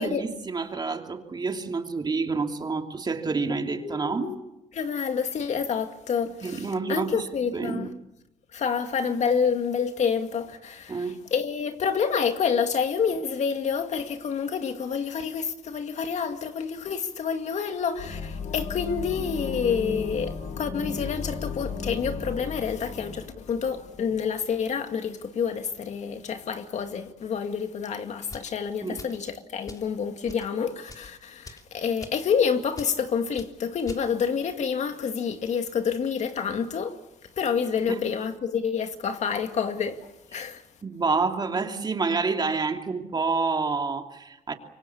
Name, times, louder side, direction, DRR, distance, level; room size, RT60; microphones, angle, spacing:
voice 1, 0.0-4.3 6.4-7.3 7.5-7.9 10.9-11.2 28.8-29.0 37.9-38.0 40.8-44.5, right 4 dB, 30° right, 2.9 m, -28 dB
voice 2, 3.8-4.4 4.7-7.9 8.5-37.0 37.4-40.0 40.3-40.6, left 6 dB, 55° left, 2.2 m, -28 dB
sound 1, 18.0-24.6, left 4 dB, 85° left, 3.8 m, -35 dB
sound 2, 28.3-28.5 29.0-29.2 29.7-29.9 30.2-30.5 30.8-31.1 31.4-31.7 32.0-32.2 32.7-32.9 33.4-33.5 33.8-34.1, left 2 dB, 25° left, 3.0 m, -44 dB
26.5 x 24.0 x 7.1 m
cardioid pair, 100°, 14 cm